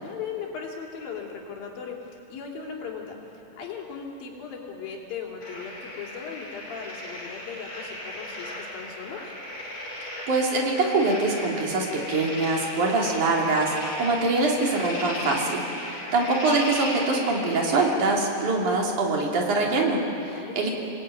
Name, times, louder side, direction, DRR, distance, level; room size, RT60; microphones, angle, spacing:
voice 1, 0.0-9.3 15.9-16.2 20.3-20.6, left 6 dB, 80° left, 0 dB, 4.8 m, -38 dB
sound 1, 5.4-17.9, left 1 dB, 50° left, 6.6 m, -36 dB
voice 2, 10.3-20.7, right 3 dB, 60° right, -1 dB, 4.5 m, -24 dB
28.0 x 19.0 x 9.3 m, 2.8 s
omnidirectional pair, 4.1 m